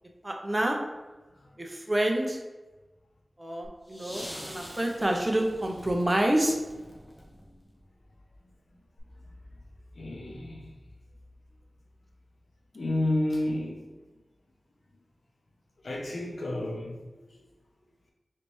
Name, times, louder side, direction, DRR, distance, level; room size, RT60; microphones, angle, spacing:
voice 1, 0.2-0.8 1.6-2.4 3.4-6.6, right 1 dB, 35° right, 2 dB, 0.7 m, -27 dB
sound 1, 3.6-7.8 9.0-9.1, equal, 15° left, 1.0 m, -45 dB
voice 2, 10.0-10.7 12.7-13.8 15.8-17.0, left 1 dB, 80° left, 0 dB, 0.8 m, -30 dB
3.9 x 3.3 x 3.1 m, 1.2 s
cardioid pair, 45°, 0 cm